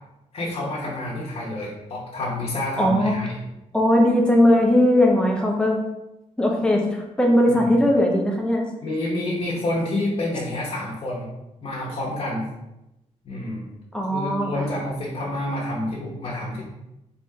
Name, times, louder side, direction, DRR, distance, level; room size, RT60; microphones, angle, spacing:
voice 1, 0.3-3.4 7.5-7.7 8.8-11.3 11.6-12.5 13.2-13.6 14.1-16.6, left 1 dB, 50° left, -5 dB, 1.0 m, -28 dB
voice 2, 2.8-3.1 3.7-5.8 6.4-8.7 13.9-14.6, left 1 dB, 5° left, 0 dB, 0.6 m, -19 dB
4.2 x 3.5 x 2.8 m, 0.92 s
wide cardioid pair, 150°, 13 cm